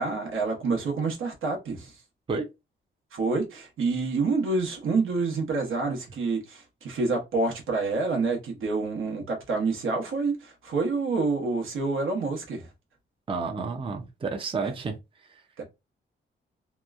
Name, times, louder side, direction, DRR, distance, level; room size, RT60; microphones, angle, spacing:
voice 1, 0.0-2.0 3.1-12.7 14.6-14.7 15.6-15.7, right 3 dB, 85° right, 0.9 m, -28 dB
voice 2, 13.3-15.0 15.3-15.4, right 4 dB, 25° right, 0.5 m, -30 dB
2.9 x 2.2 x 2.3 m
wide cardioid pair, 115°, 20 cm